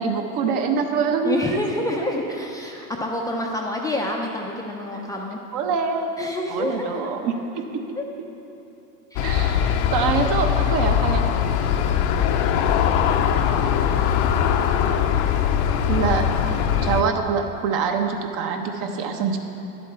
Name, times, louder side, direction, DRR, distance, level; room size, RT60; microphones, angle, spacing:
voice 1, 0.0-1.6 5.5-6.2 6.5-7.3 9.2-11.2 15.9-16.2 16.8-19.4, right 6 dB, 45° right, 4 dB, 1.0 m, -24 dB
voice 2, 1.2-5.4 6.2-7.1 8.0-8.1 9.1-9.4 18.9-19.2, left 2 dB, 10° left, -1 dB, 0.5 m, -28 dB
Aircraft, 9.2-17.0, left 8 dB, 50° left, 0.7 m, -21 dB
11.0 x 7.6 x 4.4 m, 3.0 s
hypercardioid pair, 115°, 42 cm